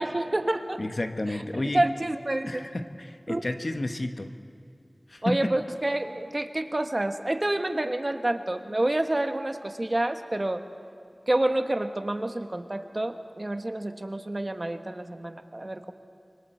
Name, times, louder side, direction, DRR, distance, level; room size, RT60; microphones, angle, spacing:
voice 1, 0.0-0.8 1.3-1.4 1.7-2.7 3.3-3.5 5.2-10.6 11.3-15.9, right 1 dB, 45° right, 7 dB, 1.2 m, -28 dB
voice 2, 0.8-1.8 2.5-4.3 5.1-5.5, left 1 dB, 65° left, 7 dB, 1.1 m, -31 dB
26.0 x 24.0 x 4.4 m, 2.5 s
wide cardioid pair, 40°, 0 cm